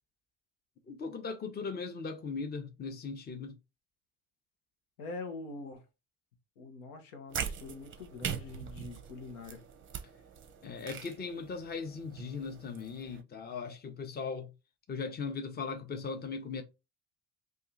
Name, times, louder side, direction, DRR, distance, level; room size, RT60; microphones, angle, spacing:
voice 1, 0.9-3.5 8.4-8.5 10.6-14.5 14.9-16.6, left 5 dB, 20° left, 0.7 m, -38 dB
voice 2, 5.0-5.8 6.6-9.6, left 3 dB, 80° left, 0.9 m, -44 dB
sound 1, 7.3-13.2, right 8 dB, 30° right, 0.6 m, -42 dB
2.7 x 2.4 x 3.8 m
hypercardioid pair, 70°, 44 cm